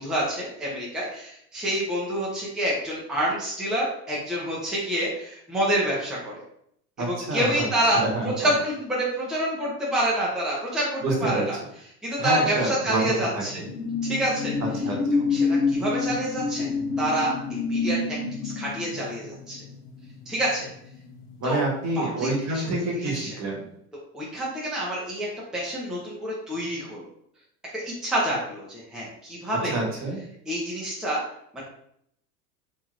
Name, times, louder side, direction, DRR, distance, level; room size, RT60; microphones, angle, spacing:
voice 1, 0.0-6.3 7.0-8.0 8.4-11.6 12.0-13.6 14.1-14.5 15.3-16.7 17.0-18.2 18.4-19.6 20.3-20.7 21.4-21.6 22.0-22.7 23.0-23.3 24.1-25.3 25.5-27.0 27.8-29.7 30.5-31.2 31.5-31.6, right 1 dB, ahead, -6 dB, 0.8 m, -27 dB
voice 2, 7.0-7.7 7.9-8.3 11.0-11.4 12.2-13.6 14.8-15.2 21.4-23.6 29.6-30.2, right 2 dB, 35° right, -2 dB, 1.3 m, -27 dB
sound 1, 12.8-21.8 22.1-22.4, left 4 dB, 60° left, 0.8 m, -28 dB
3.2 x 2.7 x 2.5 m, 0.71 s
hypercardioid pair, 90°, 47 cm